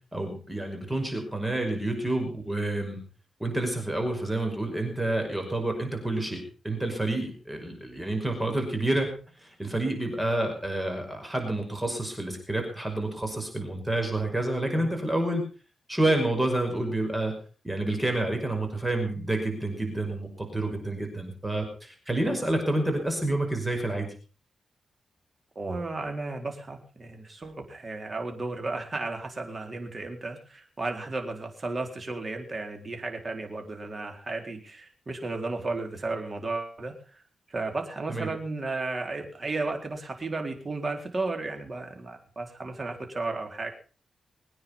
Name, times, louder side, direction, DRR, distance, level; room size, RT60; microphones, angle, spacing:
voice 1, 0.1-3.0 3.4-9.1 9.4-15.4 15.9-17.3 17.6-24.1 38.1-38.3, right 1 dB, 15° right, 4 dB, 5.6 m, -29 dB
voice 2, 25.6-37.0 37.5-43.7, right 3 dB, 35° right, 4 dB, 4.1 m, -34 dB
23.0 x 9.5 x 5.5 m, 0.38 s
wide cardioid pair, 105°, 0 cm